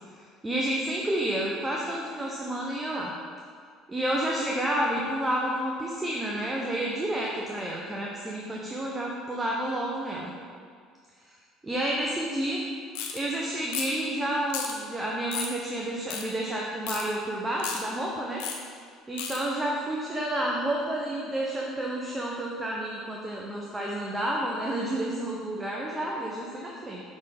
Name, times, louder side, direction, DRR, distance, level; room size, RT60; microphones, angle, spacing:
voice 1, 0.4-3.1 3.9-10.3 11.6-12.6 13.1-18.4 19.1-27.0, right 1 dB, 15° right, -2 dB, 0.9 m, -30 dB
sound 1, 12.9-13.2 13.7-14.0 14.5-14.7 15.3-15.5 16.1-16.2 16.9-17.0 17.6-17.8 18.4-18.6 19.2-19.4, left 7 dB, 80° left, 0.8 m, -33 dB
6.4 x 3.8 x 5.3 m, 2.1 s
supercardioid pair, 80°, 0 cm